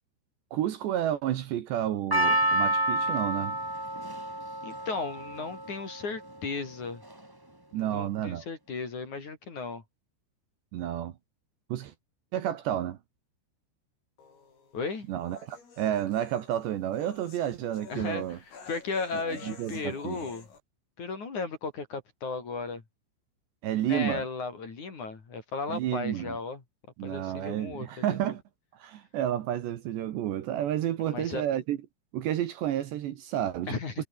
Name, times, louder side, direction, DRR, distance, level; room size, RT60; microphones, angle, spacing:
voice 1, 0.5-3.6 7.7-8.4 10.7-11.1 11.7-11.9 12.3-13.0 15.1-18.4 19.3-20.2 23.6-24.2 25.7-26.4 27.0-28.4 28.7-31.8 32.1-34.0, right 11 dB, 65° right, 3.4 m, -31 dB
Percussion, 2.1-6.5 7.1-7.2, right 1 dB, 10° right, 1.3 m, -29 dB
voice 2, 4.6-7.0 7.7-9.8 14.7-15.1 17.9-18.4 18.7-20.5 21.0-22.8 23.8-26.6 27.0-28.2 31.1-31.4 33.7-34.1, left 4 dB, 40° left, 5.0 m, -35 dB
sound 1, 14.2-20.6, left 5 dB, 85° left, 10.5 m, -51 dB
omnidirectional pair, 5.8 m